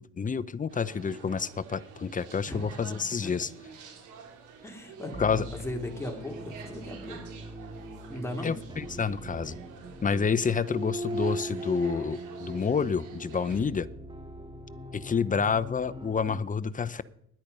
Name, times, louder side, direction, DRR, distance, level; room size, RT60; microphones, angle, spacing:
voice 1, 0.0-3.5 5.2-5.5 8.4-9.6 10.0-13.9 14.9-17.0, left 6 dB, 25° left, 15 dB, 0.7 m, -29 dB
sound 1, 0.7-13.7, right 5 dB, 85° right, 3.9 m, -49 dB
voice 2, 4.6-7.2 8.1-8.6, left 1 dB, 10° left, 2 dB, 2.8 m, -37 dB
sound 2, 5.1-16.4, right 1 dB, 15° right, 2.0 m, -40 dB
13.0 x 10.5 x 5.5 m, 0.73 s
cardioid pair, 90°, 30 cm